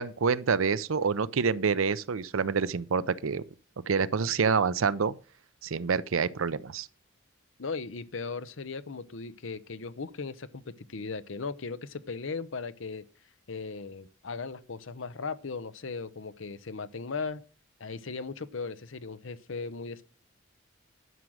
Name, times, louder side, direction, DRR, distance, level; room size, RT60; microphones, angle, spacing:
voice 1, 0.0-3.4 3.9-5.1 5.6-6.9, right 5 dB, 85° right, 0.6 m, -27 dB
voice 2, 7.6-13.0 13.5-17.4 17.8-20.0, left 4 dB, 75° left, 0.8 m, -37 dB
11.0 x 6.2 x 6.4 m
head